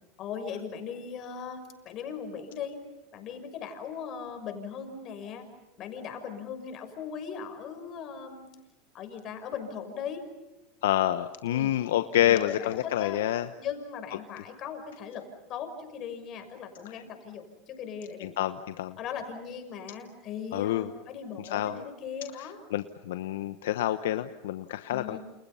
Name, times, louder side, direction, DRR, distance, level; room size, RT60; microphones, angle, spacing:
voice 1, 0.2-2.8 3.1-5.5 5.8-8.5 8.9-10.2 11.4-11.7 12.2-13.2 13.6-18.3 19.0-22.6 24.9-25.2, left 7 dB, 45° left, 7 dB, 6.4 m, -39 dB
voice 2, 10.8-13.5 16.8-17.0 18.2-19.0 20.5-20.9 21.5-21.8 22.7-25.2, left 12 dB, 80° left, 10 dB, 1.0 m, -28 dB
29.5 x 29.0 x 5.7 m, 1.1 s
hypercardioid pair, 105°, 0 cm